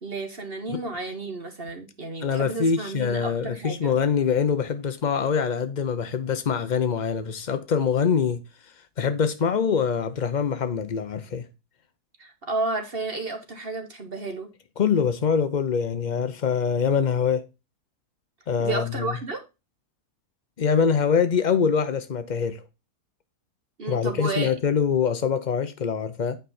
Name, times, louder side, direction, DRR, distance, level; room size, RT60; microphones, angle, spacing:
voice 1, 0.0-3.9 12.2-14.5 18.6-19.4 23.8-24.5, right 3 dB, 40° right, 1.4 m, -32 dB
voice 2, 2.2-8.4 9.0-11.5 14.8-17.4 18.5-19.1 20.6-22.6 23.9-26.4, left 6 dB, 75° left, 0.4 m, -24 dB
9.1 x 5.2 x 4.2 m
omnidirectional pair, 1.7 m